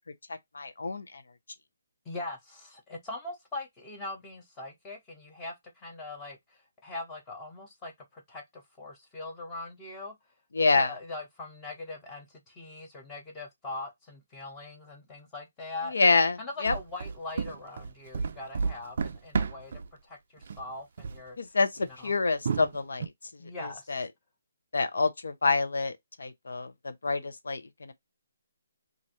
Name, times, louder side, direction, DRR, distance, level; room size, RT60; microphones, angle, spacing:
voice 1, 0.3-1.2 10.5-10.9 15.8-16.7 21.4-23.1 23.6-24.1 24.7-25.9 26.2-27.9, left 3 dB, 80° left, 0.7 m, -27 dB
voice 2, 2.0-10.1 10.8-16.0 16.4-21.4 22.0-22.1 23.4-24.1, left 2 dB, 10° left, 0.7 m, -41 dB
sound 1, 16.6-19.9 20.4-20.7 21.0-21.2 21.8-21.9 22.4-23.1, right 5 dB, 45° right, 0.3 m, -31 dB
3.1 x 2.5 x 2.8 m
hypercardioid pair, 175°, 0 cm